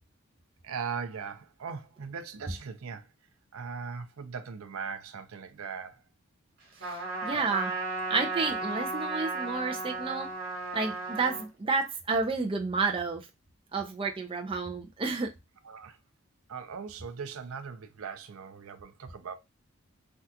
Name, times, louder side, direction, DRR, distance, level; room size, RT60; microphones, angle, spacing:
voice 1, 0.6-3.1 3.5-6.0 15.6-16.0 16.5-19.4, right 6 dB, 80° right, 0.5 m, -39 dB
voice 2, 6.8-7.7 8.1-10.3 10.7-13.2 13.7-15.3, right 4 dB, 25° right, 0.4 m, -30 dB
Trumpet, 6.8-11.5, right 3 dB, 50° right, 1.4 m, -34 dB
3.4 x 2.3 x 2.7 m
head